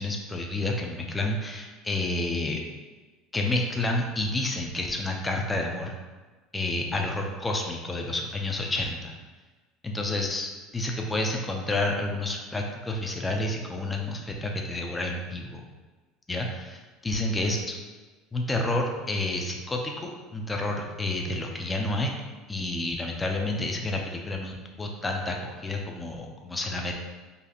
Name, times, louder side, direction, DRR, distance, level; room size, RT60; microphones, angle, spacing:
voice 1, 0.0-2.6 3.3-5.9 6.5-9.1 9.8-15.6 16.3-17.8 18.3-22.1 22.5-26.9, left 2 dB, 20° left, 1 dB, 0.5 m, -29 dB
4.0 x 2.5 x 2.8 m, 1.3 s
hypercardioid pair, 85°, 0 cm